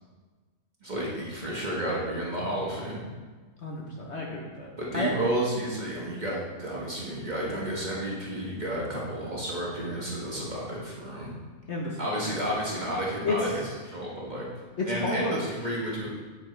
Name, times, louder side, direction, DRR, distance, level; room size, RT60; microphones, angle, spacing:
voice 1, 0.8-3.0 4.8-11.3 12.0-14.4 14.8-16.1, right 1 dB, 30° right, -5 dB, 1.7 m, -31 dB
voice 2, 3.6-5.1 11.7-12.4 13.2-13.4 14.8-15.4, left 2 dB, 50° left, -2 dB, 1.2 m, -31 dB
8.7 x 8.5 x 3.3 m, 1.3 s
omnidirectional pair, 1.6 m